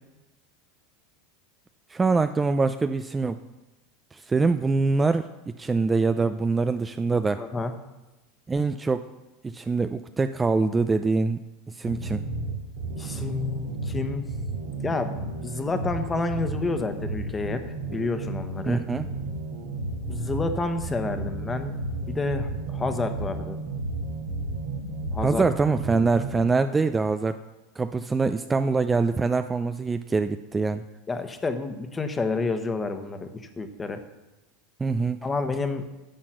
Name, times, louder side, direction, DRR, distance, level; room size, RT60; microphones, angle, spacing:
voice 1, 1.9-3.4 4.1-5.3 5.6-7.4 8.5-9.1 9.4-11.4 11.7-12.2 18.7-19.1 25.2-27.4 27.8-30.8 34.8-35.2, right 4 dB, 15° right, 10 dB, 0.4 m, -24 dB
voice 2, 7.4-7.7 12.9-14.3 14.8-18.8 20.1-21.7 22.1-23.6 25.1-25.5 31.1-34.0 35.2-35.9, left 3 dB, 20° left, 8 dB, 1.2 m, -29 dB
sound 1, 11.8-26.3, right 2 dB, 85° right, 2.4 m, -33 dB
10.5 x 7.4 x 6.2 m, 1.1 s
supercardioid pair, 110°, 0 cm